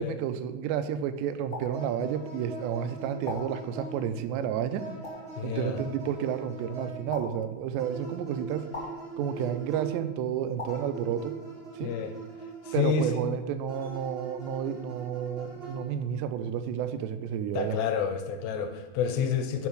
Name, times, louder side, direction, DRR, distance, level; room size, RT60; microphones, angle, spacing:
voice 1, 0.0-4.8 5.4-8.7 9.2-11.3 11.8-11.9 12.7-17.8, right 9 dB, 85° right, 10 dB, 2.8 m, -31 dB
sound 1, 1.5-1.7 3.2-3.4 5.0-5.2 7.1-7.2 8.7-8.9 10.6-10.7, left 3 dB, 20° left, 1.8 m, -36 dB
sound 2, 1.7-4.3 4.8-7.2 7.8-10.3 10.7-13.1 13.7-16.1, right 4 dB, 65° right, 0.5 m, -42 dB
voice 2, 5.4-5.8 9.2-9.3 11.8-12.2 12.6-13.2 17.5-19.7, left 7 dB, 80° left, 7 dB, 2.8 m, -29 dB
10.5 x 6.5 x 4.7 m, 1.2 s
omnidirectional pair, 4.9 m